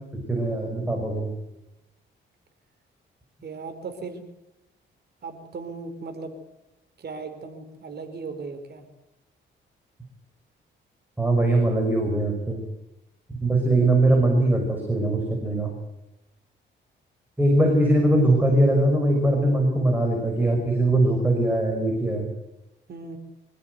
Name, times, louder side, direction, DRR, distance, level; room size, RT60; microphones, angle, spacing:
voice 1, 0.3-1.3 11.2-12.6 13.4-15.7 17.4-22.3, right 1 dB, 10° right, 1 dB, 6.2 m, -21 dB
voice 2, 3.4-4.2 5.2-6.4 7.0-8.9 22.9-23.2, right 4 dB, 55° right, 7 dB, 4.7 m, -37 dB
25.5 x 16.5 x 8.3 m, 0.92 s
cardioid pair, 105°, 21 cm